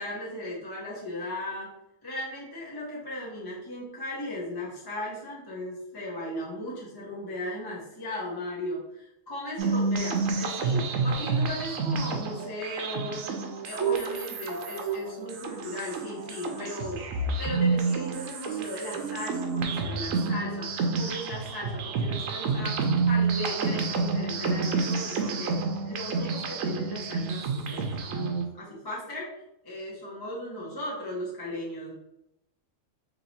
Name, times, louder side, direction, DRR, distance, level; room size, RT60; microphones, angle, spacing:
voice 1, 0.0-1.7 2.0-13.3 13.7-17.1 17.4-29.3 29.6-31.9, left 1 dB, 20° left, -5 dB, 0.7 m, -37 dB
sound 1, 9.6-28.5, right 4 dB, 85° right, 1.0 m, -29 dB
2.9 x 2.8 x 4.1 m, 0.83 s
omnidirectional pair, 1.3 m